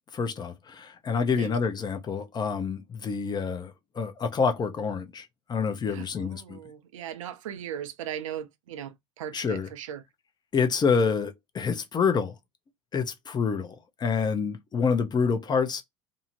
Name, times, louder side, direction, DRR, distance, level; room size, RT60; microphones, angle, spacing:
voice 1, 0.1-6.6 9.3-9.7 10.5-12.3 12.9-15.8, left 5 dB, 25° left, 0.6 m, -27 dB
voice 2, 5.9-10.0, right 10 dB, 75° right, 0.4 m, -38 dB
2.6 x 2.1 x 2.8 m
hypercardioid pair, 75°, 17 cm